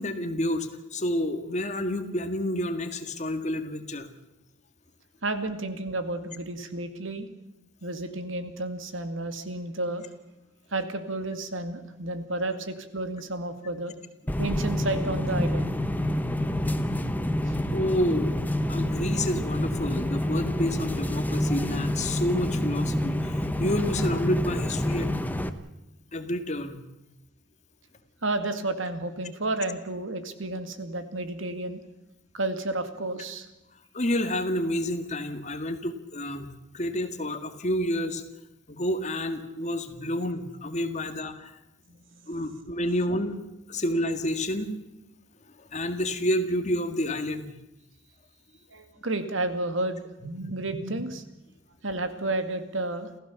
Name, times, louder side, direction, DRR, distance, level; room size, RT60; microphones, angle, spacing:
voice 1, 0.0-4.1 17.7-18.4 18.7-25.3 26.1-26.8 33.9-36.5 36.7-38.2 38.7-41.5 42.3-43.4 43.7-44.8 45.7-47.5, left 1 dB, 35° left, 8 dB, 1.9 m, -29 dB
voice 2, 5.2-7.3 7.8-10.1 10.7-13.9 14.4-15.7 17.5-17.6 28.2-31.8 32.3-33.5 41.9-42.3 48.7-51.2 51.8-53.1, right 2 dB, 85° right, 9 dB, 2.2 m, -31 dB
sound 1, 14.3-25.5, left 1 dB, 10° left, 1.1 m, -28 dB
28.5 x 15.5 x 7.1 m, 0.96 s
head